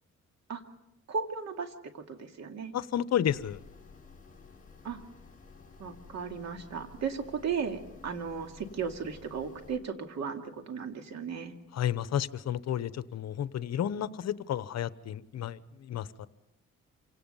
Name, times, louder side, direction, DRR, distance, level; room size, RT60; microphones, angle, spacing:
voice 1, 1.1-2.7 4.8-5.0 5.8-11.5, right 6 dB, 60° right, 6 dB, 2.3 m, -36 dB
voice 2, 2.7-3.6 11.7-16.3, left 10 dB, 60° left, 15 dB, 0.9 m, -32 dB
sound 1, 3.2-9.8, left 4 dB, 25° left, 5.9 m, -53 dB
26.5 x 18.0 x 5.5 m, 0.90 s
cardioid pair, 90°, 30 cm